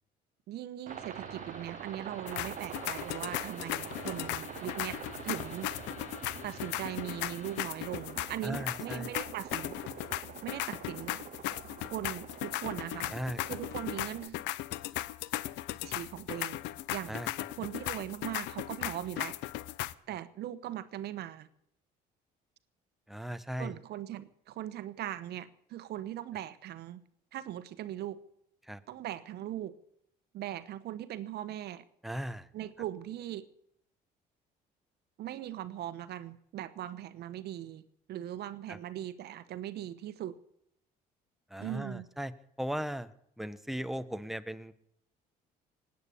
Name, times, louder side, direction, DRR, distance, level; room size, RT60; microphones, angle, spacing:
voice 1, 0.5-5.7 6.4-9.8 10.4-11.2 11.9-13.1 13.5-14.4 15.8-16.6 16.9-17.2 17.6-19.4 20.1-21.5 23.6-27.0 27.3-28.2 28.9-29.7 30.3-31.8 32.5-33.5 35.2-37.8 38.1-40.4 41.6-42.1, right 12 dB, 65° right, 13 dB, 1.1 m, -40 dB
sound 1, 0.9-7.7, left 4 dB, 45° left, 2.1 m, -52 dB
Aircraft, 0.9-14.3, right 10 dB, 50° right, 0.6 m, -46 dB
sound 2, 2.3-19.9, left 15 dB, 85° left, 0.7 m, -37 dB
voice 2, 8.4-9.1 13.1-13.4 17.1-17.3 23.1-23.8 28.6-28.8 32.0-32.5 38.7-38.8 41.5-42.3 42.6-43.1 43.4-44.7, equal, ahead, 12 dB, 1.0 m, -37 dB
18.5 x 9.1 x 8.5 m, 0.73 s
cardioid pair, 90°, 18 cm